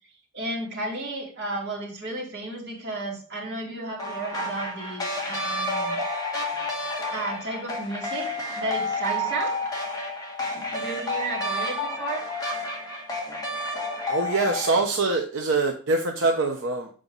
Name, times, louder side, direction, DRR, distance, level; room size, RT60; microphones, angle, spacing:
voice 1, 0.3-6.0 7.1-8.3 8.6-9.5 10.7-12.2, right 2 dB, 60° right, -4 dB, 3.1 m, -33 dB
sound 1, 4.0-14.8, left 1 dB, 20° left, 1.5 m, -30 dB
voice 2, 14.1-16.9, right 3 dB, 85° right, 1 dB, 0.9 m, -24 dB
7.7 x 5.1 x 3.9 m, 0.41 s
head